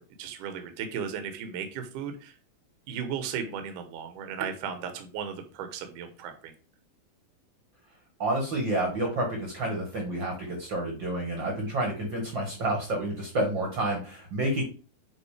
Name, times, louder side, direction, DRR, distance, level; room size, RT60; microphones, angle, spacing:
voice 1, 0.0-2.3 2.9-6.5, right 7 dB, 65° right, 6 dB, 2.4 m, -36 dB
voice 2, 8.2-14.6, right 1 dB, 40° right, 1 dB, 1.9 m, -29 dB
8.7 x 3.7 x 5.0 m, 0.36 s
omnidirectional pair, 4.2 m